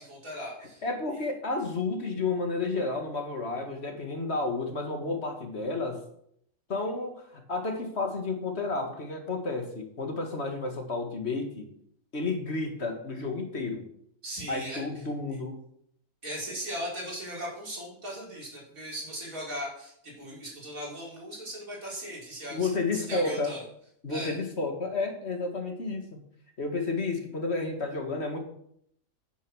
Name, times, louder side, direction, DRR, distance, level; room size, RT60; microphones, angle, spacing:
voice 1, 0.0-0.8 1.1-1.2 14.2-14.8 16.2-23.6 24.1-24.4, equal, 80° right, -3 dB, 5.0 m, -38 dB
voice 2, 0.8-6.0 6.7-7.2 7.5-11.7 12.1-13.9 14.5-15.5 22.5-23.5 24.0-26.2 26.6-28.4, left 3 dB, 50° left, 4 dB, 2.2 m, -31 dB
9.8 x 9.4 x 6.3 m, 0.68 s
omnidirectional pair, 1.4 m